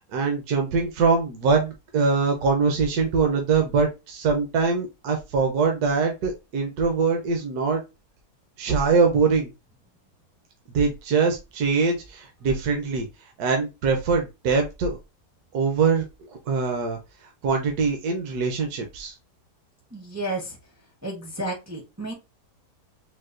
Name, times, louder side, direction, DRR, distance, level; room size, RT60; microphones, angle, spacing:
voice 1, 0.1-7.8 8.6-9.5 10.7-13.1 13.4-15.0 15.5-16.0 16.5-17.0 17.4-19.1, right 5 dB, 75° right, 3 dB, 1.2 m, -23 dB
voice 2, 19.9-20.5 21.0-22.1, right 1 dB, 25° right, -1 dB, 0.3 m, -31 dB
4.5 x 2.1 x 2.4 m, 0.25 s
omnidirectional pair, 1.7 m